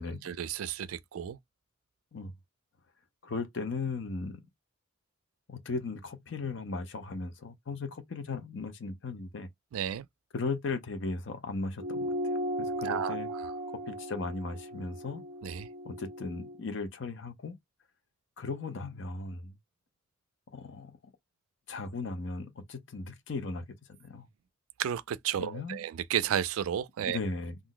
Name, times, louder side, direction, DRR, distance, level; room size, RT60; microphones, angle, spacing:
voice 1, 0.3-1.4 9.7-10.1 12.8-13.2 15.4-15.7 24.8-27.2, right 9 dB, 80° right, 0.3 m, -32 dB
voice 2, 3.2-4.5 5.5-9.5 10.3-13.3 13.9-15.3 15.8-17.6 18.4-19.6 20.5-21.0 21.7-24.3 25.4-25.8 27.0-27.6, left 3 dB, 55° left, 0.5 m, -37 dB
sound 1, 11.8-16.6, equal, 40° right, 0.6 m, -36 dB
2.5 x 2.0 x 3.8 m
head